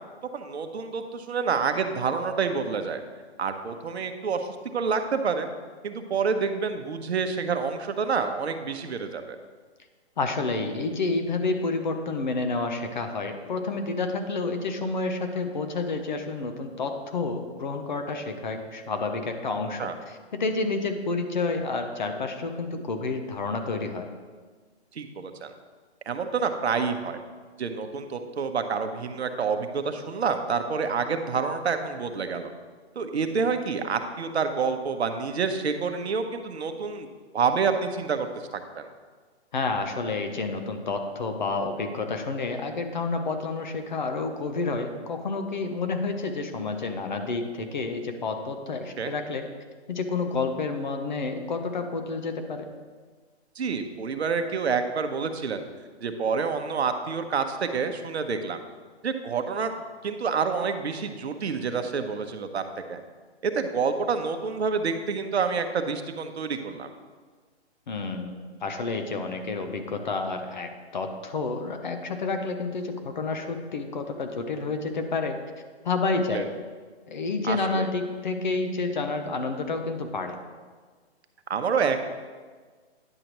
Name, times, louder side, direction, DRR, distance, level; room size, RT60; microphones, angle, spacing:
voice 1, 0.3-3.0 3.4-4.5 4.7-5.5 5.8-9.4 19.8-19.9 24.9-25.5 26.1-27.2 27.6-32.5 33.0-37.1 37.3-38.3 38.5-38.8 49.0-49.1 53.6-55.6 56.0-58.6 59.0-59.7 60.0-62.6 62.9-63.0 63.4-66.9 76.3-76.5 77.4-77.9 81.5-82.0, right 5 dB, 70° right, 7 dB, 0.9 m, -28 dB
voice 2, 10.2-24.1 39.5-49.4 49.9-52.7 67.9-75.4 75.8-76.5 77.1-80.4, left 3 dB, 45° left, 6 dB, 0.8 m, -29 dB
9.8 x 6.5 x 3.0 m, 1.5 s
hypercardioid pair, 165°, 33 cm